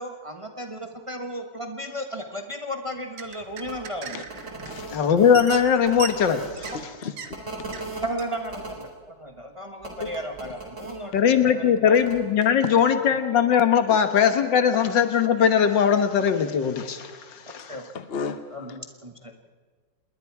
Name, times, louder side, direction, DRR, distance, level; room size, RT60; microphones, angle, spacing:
voice 1, 0.0-4.2 8.0-11.2 11.4-12.0 17.7-17.9 18.5-19.5, equal, 20° right, 4 dB, 1.1 m, -35 dB
sound 1, 2.9-4.9 5.1-6.9 7.2-7.3 7.7-7.9 8.2-8.3, right 6 dB, 75° right, 2.0 m, -37 dB
sound 2, 3.6-3.8 4.3-6.7 7.3-8.8 9.8-10.9 11.9-12.1, right 2 dB, 40° right, 4.1 m, -38 dB
voice 2, 4.9-6.7 11.1-17.8, left 7 dB, 80° left, 8 dB, 2.0 m, -20 dB
voice 3, 6.7-7.1 13.9-14.0 17.6-18.8, left 5 dB, 45° left, 9 dB, 0.8 m, -35 dB
27.0 x 21.0 x 4.8 m, 1.5 s
omnidirectional pair, 2.0 m